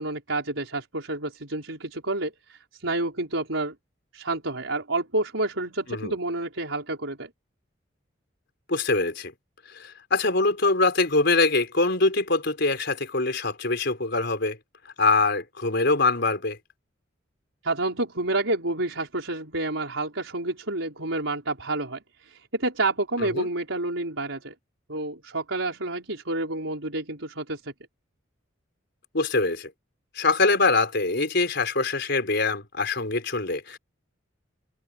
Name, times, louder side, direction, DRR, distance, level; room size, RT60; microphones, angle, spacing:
voice 1, 0.0-3.7 4.1-7.3 17.6-24.5 24.9-27.7, right 2 dB, 80° right, 4.6 m, -29 dB
voice 2, 8.7-9.3 9.7-14.6 15.0-16.6 23.2-23.5 29.1-29.7 30.1-33.8, left 3 dB, 60° left, 4.9 m, -23 dB
head